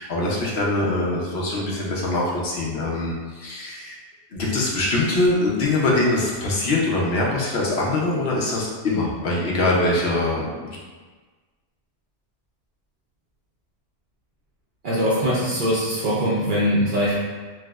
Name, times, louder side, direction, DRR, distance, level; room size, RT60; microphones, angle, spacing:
voice 1, 0.0-4.0 4.3-10.8, left 2 dB, 65° left, -4 dB, 0.8 m, -23 dB
voice 2, 14.8-17.2, equal, 55° right, -6 dB, 0.6 m, -22 dB
4.6 x 2.0 x 2.3 m, 1.4 s
omnidirectional pair, 1.2 m